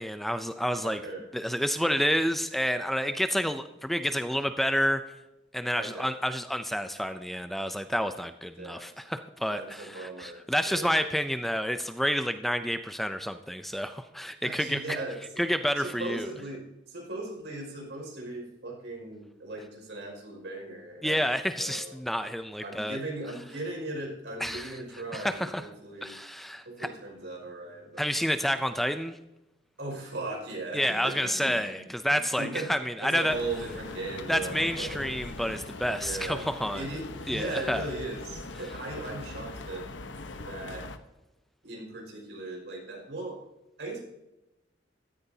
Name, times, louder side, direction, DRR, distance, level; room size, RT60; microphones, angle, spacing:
voice 1, 0.0-1.0 1.3-5.0 5.5-15.0 15.4-16.3 21.0-23.0 24.4-24.7 25.1-25.6 26.0-26.9 28.0-29.2 30.7-33.4 34.3-36.9 37.3-37.9, equal, ahead, 9 dB, 0.4 m, -29 dB
voice 2, 0.8-1.3 5.7-6.1 8.6-8.9 9.5-11.0 14.4-15.4 15.8-22.0 22.6-26.1 26.7-28.1 29.8-32.7 33.0-35.1 35.9-36.5 36.7-39.9 40.4-40.8 41.6-43.4 43.8-44.0, right 2 dB, 70° right, -1 dB, 5.6 m, -38 dB
sound 1, 33.3-41.0, left 2 dB, 85° left, 1.0 m, -41 dB
15.5 x 14.0 x 2.8 m, 0.96 s
head